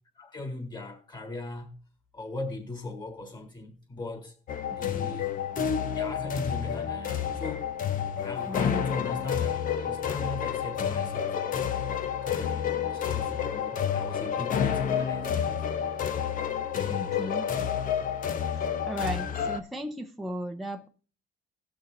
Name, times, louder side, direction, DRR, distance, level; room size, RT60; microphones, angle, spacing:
voice 1, 0.2-1.8 2.1-4.3 4.7-5.3 5.9-7.8 8.2-11.4 12.2-15.6, left 2 dB, 25° left, 3.5 m, -39 dB
sound 1, 4.5-19.6, left 8 dB, 55° left, 1.0 m, -29 dB
voice 2, 8.5-8.8 16.9-17.4 18.8-20.9, right 1 dB, ahead, 0.8 m, -35 dB
18.5 x 6.3 x 2.6 m
cardioid pair, 110°, 17 cm